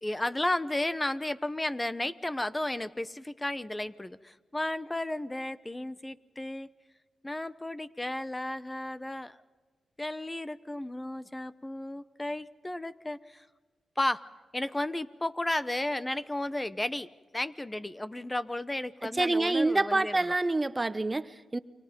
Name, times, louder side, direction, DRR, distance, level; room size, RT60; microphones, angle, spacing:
voice 1, 0.0-6.7 7.2-9.4 10.0-13.5 14.0-14.2 14.5-17.1 17.3-20.1, left 1 dB, 15° left, 15 dB, 0.9 m, -33 dB
voice 2, 19.1-21.6, right 2 dB, 25° right, 14 dB, 0.9 m, -27 dB
29.5 x 24.5 x 5.4 m, 1.3 s
cardioid pair, 60°, 0 cm